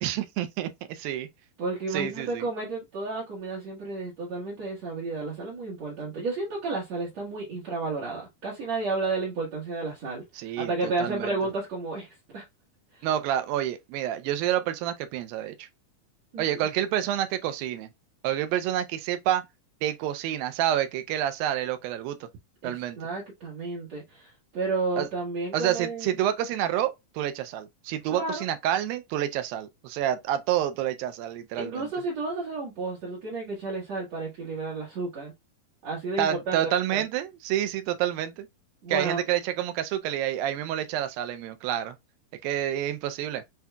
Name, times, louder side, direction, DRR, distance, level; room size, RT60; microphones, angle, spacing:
voice 1, 0.0-1.3 1.9-2.4 10.4-11.4 13.0-15.7 16.4-17.9 18.2-19.4 19.8-22.3 22.6-23.0 25.0-25.1 25.5-31.9 36.2-38.5 38.9-42.0 42.4-43.4, right 11 dB, 85° right, 2.4 m, -28 dB
voice 2, 1.6-10.2 10.6-12.4 12.9-13.1 16.3-16.5 22.6-26.1 28.1-28.4 31.6-35.3 35.8-37.0 38.8-39.2, right 3 dB, 55° right, 2.2 m, -32 dB
7.9 x 2.8 x 2.3 m
omnidirectional pair, 4.1 m